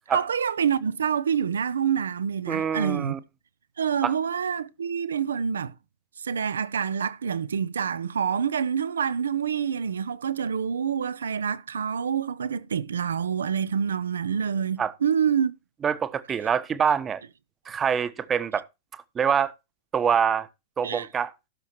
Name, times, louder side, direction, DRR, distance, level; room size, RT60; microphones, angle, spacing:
voice 1, 0.1-3.2 3.8-5.7 6.2-15.5 20.8-21.1, right 7 dB, 70° right, 0.7 m, -27 dB
voice 2, 2.5-3.2 4.0-4.1 14.8-14.9 15.8-17.2 17.6-18.6 18.9-19.5 19.9-20.5 20.8-21.3, right 7 dB, 20° right, 1.1 m, -25 dB
16.0 x 7.0 x 3.1 m
figure-of-eight pair, 90°, 0 cm